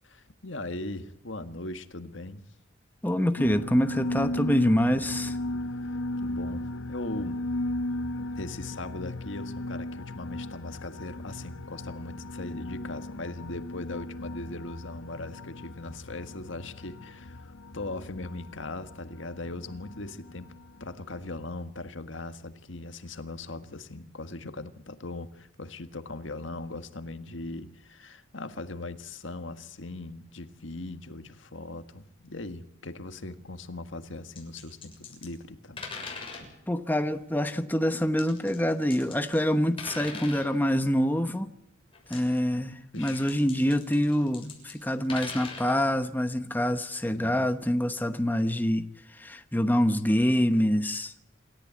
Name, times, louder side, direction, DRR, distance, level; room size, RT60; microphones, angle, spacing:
voice 1, 0.0-2.4 6.2-7.4 8.2-20.5 20.8-35.8 42.9-43.4 46.4-46.6 47.1-47.5, left 2 dB, 70° left, 9 dB, 1.7 m, -39 dB
voice 2, 3.0-5.4 36.7-41.5 42.1-48.9 49.1-51.1, equal, 10° left, 8 dB, 1.0 m, -26 dB
sound 1, 3.4-21.5, left 1 dB, 90° left, 0.9 m, -36 dB
sound 2, 34.4-35.3 35.8-36.5 38.2-39.5 39.8-40.5 41.9-42.4 42.9-45.7, left 4 dB, 30° left, 6.8 m, -41 dB
27.5 x 14.0 x 8.5 m, 0.82 s
head